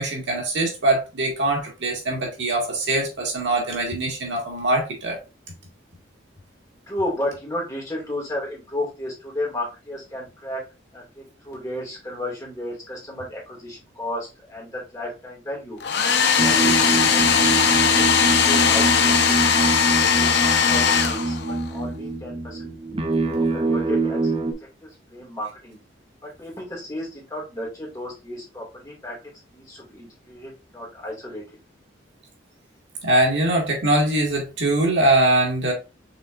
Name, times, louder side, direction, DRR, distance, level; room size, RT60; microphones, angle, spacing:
voice 1, 0.0-5.2 33.0-35.7, right 1 dB, 70° right, 1.7 m, -22 dB
voice 2, 6.9-10.6 10.9-15.8 16.4-21.4 21.7-22.7 23.2-24.4 24.8-25.8 26.2-29.2 29.5-31.4, left 1 dB, 20° left, 2.0 m, -33 dB
Domestic sounds home sounds, 15.8-21.7, left 7 dB, 60° left, 0.6 m, -19 dB
sound 1, 16.4-24.5, right 3 dB, 30° right, 0.5 m, -25 dB
5.5 x 3.8 x 2.5 m
head